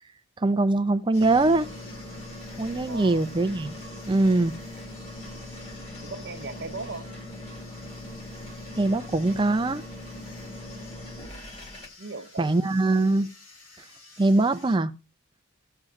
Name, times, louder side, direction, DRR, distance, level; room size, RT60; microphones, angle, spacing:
voice 1, 0.4-1.7 2.6-3.8 4.1-4.5 8.8-9.8 12.4-13.3 14.2-14.9, right 2 dB, 20° right, 0.4 m, -22 dB
sound 1, 1.1-14.8, left 3 dB, 80° left, 6.4 m, -51 dB
sound 2, 1.2-11.9, left 1 dB, 30° left, 1.9 m, -41 dB
voice 2, 2.9-3.3 6.0-7.1 12.0-12.5, right 3 dB, 50° right, 0.8 m, -38 dB
16.5 x 7.7 x 2.5 m
head